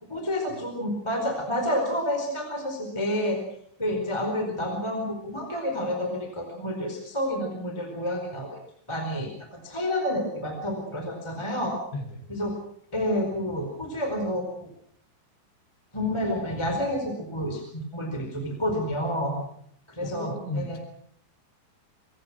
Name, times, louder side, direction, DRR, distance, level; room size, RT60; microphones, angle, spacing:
voice 1, 0.1-3.4 3.8-8.5 8.9-11.8 12.3-12.5 12.9-14.7 15.9-19.4 19.9-20.8, equal, 5° left, 3 dB, 4.2 m, -29 dB
voice 2, 20.0-20.8, left 2 dB, 85° left, 5 dB, 6.0 m, -35 dB
27.0 x 23.0 x 6.1 m, 0.65 s
omnidirectional pair, 5.3 m